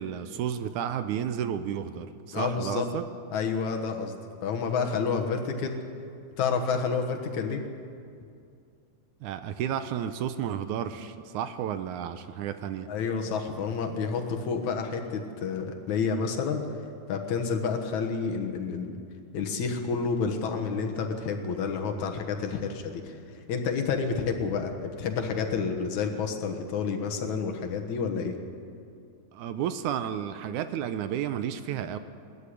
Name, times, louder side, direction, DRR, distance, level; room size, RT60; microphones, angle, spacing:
voice 1, 0.0-3.0 9.2-12.9 29.3-32.0, right 9 dB, 80° right, 11 dB, 2.1 m, -32 dB
voice 2, 2.3-2.9 3.3-4.2 4.4-5.8 6.4-7.6 12.9-16.6 17.1-18.9 19.3-28.4, left 5 dB, 65° left, 4 dB, 2.6 m, -29 dB
19.5 x 14.0 x 10.0 m, 2.4 s
omnidirectional pair, 3.7 m